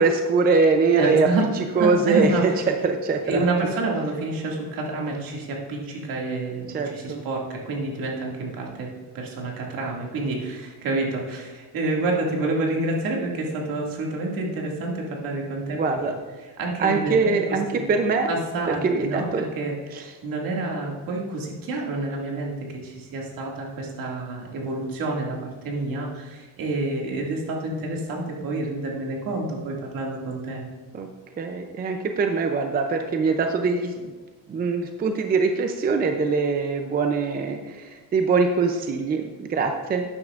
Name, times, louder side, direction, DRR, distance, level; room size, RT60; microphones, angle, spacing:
voice 1, 0.0-1.3 1.5-3.5 6.7-7.2 15.7-16.1 16.8-18.3 18.8-19.4 19.9-20.0 30.9-31.1 31.4-34.1 34.5-40.0, right 4 dB, 25° right, 5 dB, 0.5 m, -23 dB
voice 2, 1.0-1.5 1.8-2.4 3.3-8.9 9.1-15.8 16.6-17.9 18.3-30.6, right 2 dB, 60° right, -1 dB, 2.2 m, -28 dB
12.0 x 9.6 x 2.5 m, 1.3 s
cardioid pair, 160°, 39 cm